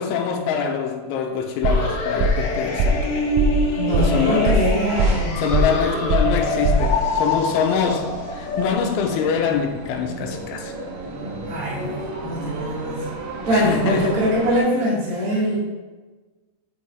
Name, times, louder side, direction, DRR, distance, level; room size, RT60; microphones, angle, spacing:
voice 1, 0.0-3.2 4.0-4.6 5.4-10.7 13.5-14.1, left 7 dB, 90° left, 4 dB, 3.2 m, -24 dB
sound 1, 1.6-8.7, left 1 dB, 60° left, 2.0 m, -26 dB
sound 2, 1.6-1.9 2.2-2.5 2.8-3.1 3.4-3.6 3.9-4.2 4.5-5.3 5.5-5.8 6.1-6.4 6.6-6.9, right 5 dB, 90° right, 3.4 m, -21 dB
voice 2, 3.7-5.4 11.5-13.1 13.5-15.6, equal, 45° right, -6 dB, 2.0 m, -23 dB
sound 3, 4.0-14.6, right 2 dB, 70° right, 3.1 m, -33 dB
8.8 x 8.4 x 3.5 m, 1.3 s
omnidirectional pair, 5.5 m